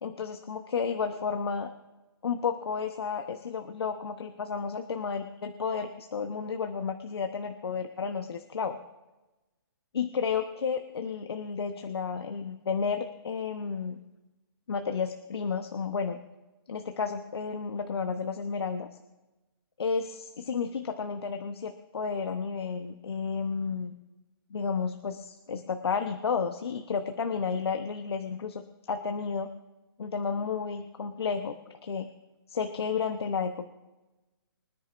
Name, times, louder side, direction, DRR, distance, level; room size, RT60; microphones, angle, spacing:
voice 1, 0.0-1.7 2.2-8.8 9.9-14.0 14.7-16.2 16.7-18.9 19.8-23.9 24.5-29.5 30.0-31.5 31.8-32.1 32.5-33.7, left 5 dB, 85° left, 6 dB, 1.0 m, -32 dB
24.5 x 10.0 x 2.6 m, 1.1 s
hypercardioid pair, 160°, 13 cm